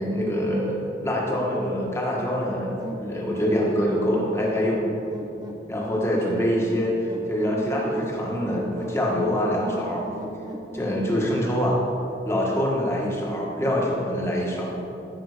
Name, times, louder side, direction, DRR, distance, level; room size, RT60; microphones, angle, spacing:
voice 1, 0.0-2.7 3.0-4.8 5.7-6.9 7.3-10.0 10.7-11.8 12.2-14.7, equal, 15° left, -3 dB, 1.7 m, -25 dB
sound 1, 2.8-11.5, equal, 20° right, 0.9 m, -37 dB
14.0 x 5.8 x 5.1 m, 2.9 s
head